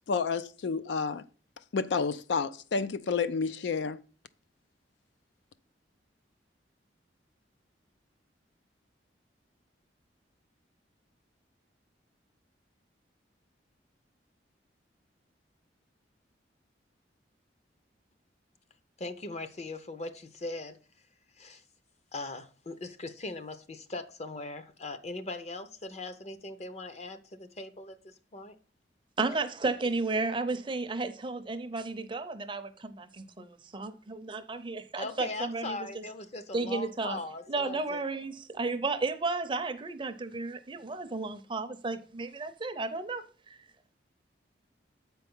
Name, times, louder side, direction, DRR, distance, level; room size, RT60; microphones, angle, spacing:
voice 1, 0.1-1.2 1.7-4.0, left 5 dB, 75° left, 0.4 m, -30 dB
voice 2, 19.0-20.8 21.4-21.6 22.1-28.5 35.0-38.0, left 2 dB, 35° left, 0.7 m, -40 dB
voice 3, 29.2-36.0 36.5-37.2 37.5-43.6, right 3 dB, 25° right, 0.6 m, -33 dB
7.5 x 4.5 x 5.4 m
head